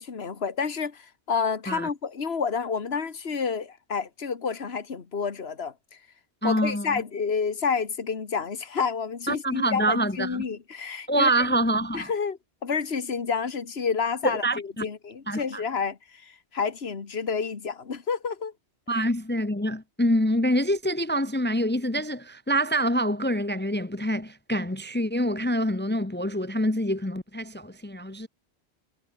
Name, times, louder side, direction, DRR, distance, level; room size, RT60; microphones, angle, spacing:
voice 1, 0.0-5.7 6.4-11.5 11.9-18.5 19.0-19.1, left 5 dB, 70° left, 1.9 m, -29 dB
voice 2, 6.4-7.0 9.3-10.4 11.1-12.1 14.2-14.9 15.3-15.6 18.9-28.3, right 1 dB, 10° left, 0.9 m, -26 dB
omnidirectional pair, 1.1 m